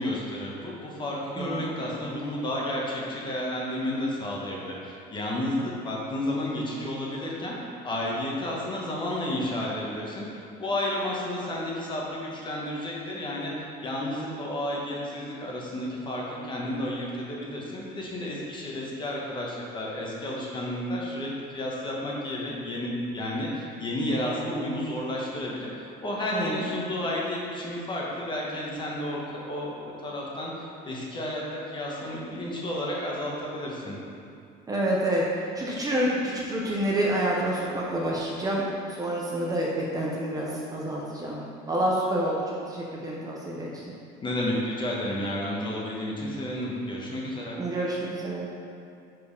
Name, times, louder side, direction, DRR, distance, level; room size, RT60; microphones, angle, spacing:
voice 1, 0.0-7.6 7.8-13.5 13.8-34.0 44.2-47.6, left 1 dB, 25° left, -3 dB, 1.2 m, -31 dB
voice 2, 1.3-1.8 26.3-26.7 34.7-43.9 47.6-48.5, right 1 dB, 20° right, -4 dB, 0.8 m, -28 dB
5.1 x 4.6 x 5.3 m, 2.5 s
cardioid pair, 135°, 19 cm